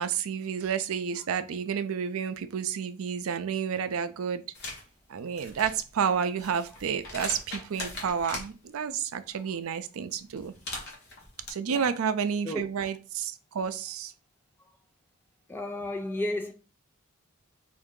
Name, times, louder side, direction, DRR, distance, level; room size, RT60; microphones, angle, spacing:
voice 1, 0.0-4.4 5.1-10.5 11.5-14.1, right 7 dB, 75° right, 0.4 m, -30 dB
sound 1, 4.5-4.8 5.3-8.5 10.4-11.5, left 2 dB, 50° left, 1.2 m, -40 dB
voice 2, 15.5-16.5, left 1 dB, 10° left, 0.3 m, -32 dB
3.6 x 2.6 x 3.6 m
head